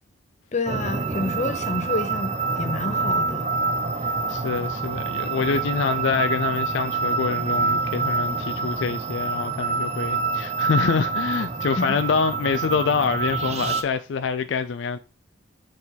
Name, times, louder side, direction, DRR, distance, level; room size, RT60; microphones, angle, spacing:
voice 1, 0.5-3.5 11.8-12.0, left 2 dB, 35° left, 0.7 m, -28 dB
sound 1, 0.7-13.8, right 4 dB, 30° right, 0.6 m, -26 dB
voice 2, 4.3-15.0, left 5 dB, 65° left, 0.4 m, -26 dB
6.9 x 3.8 x 4.0 m
head